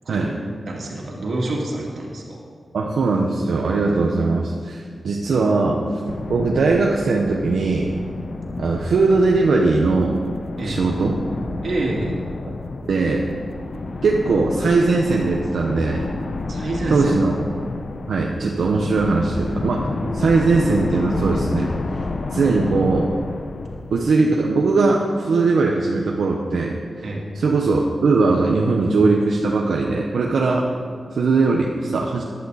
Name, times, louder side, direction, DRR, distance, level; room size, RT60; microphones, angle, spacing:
voice 1, 0.7-2.4 10.6-10.8 11.6-12.2 16.5-17.2 27.0-27.2, right 2 dB, 65° right, -2 dB, 2.5 m, -27 dB
voice 2, 2.7-5.8 6.3-7.9 8.6-10.2 10.6-11.2 12.9-13.2 14.0-16.1 16.9-17.4 18.1-21.7 22.3-23.1 23.9-26.8 27.3-30.6 31.1-32.2, right 3 dB, 85° right, -1 dB, 1.0 m, -19 dB
sound 1, 6.1-24.5, left 3 dB, 50° left, 0.7 m, -30 dB
15.0 x 11.0 x 4.1 m, 2.1 s
wide cardioid pair, 140°, 0 cm